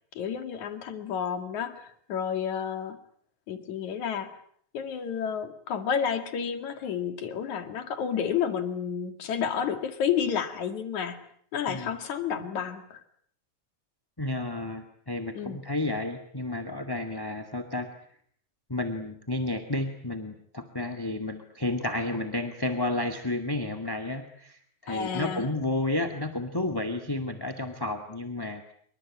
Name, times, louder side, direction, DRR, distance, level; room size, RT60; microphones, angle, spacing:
voice 1, 0.2-3.0 3.5-4.3 4.7-11.2 11.5-13.0 15.4-15.6 24.9-25.5, left 7 dB, 75° left, 9 dB, 3.5 m, -31 dB
voice 2, 11.7-12.0 14.2-17.9 18.7-28.7, left 2 dB, 10° left, 8 dB, 1.8 m, -31 dB
27.5 x 24.5 x 8.7 m, 0.64 s
omnidirectional pair, 3.4 m